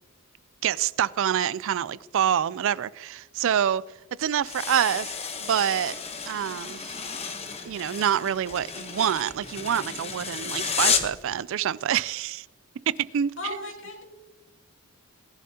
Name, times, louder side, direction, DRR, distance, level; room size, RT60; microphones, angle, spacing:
voice 1, 0.6-3.8 4.2-5.1 5.4-6.0 6.3-7.0 7.6-12.5 12.9-13.6, right 9 dB, 60° right, 0.3 m, -26 dB
sound 1, 4.4-11.2, left 6 dB, 30° left, 1.0 m, -32 dB
voice 2, 13.4-14.0, left 3 dB, 60° left, 2.7 m, -35 dB
20.0 x 11.0 x 2.8 m
head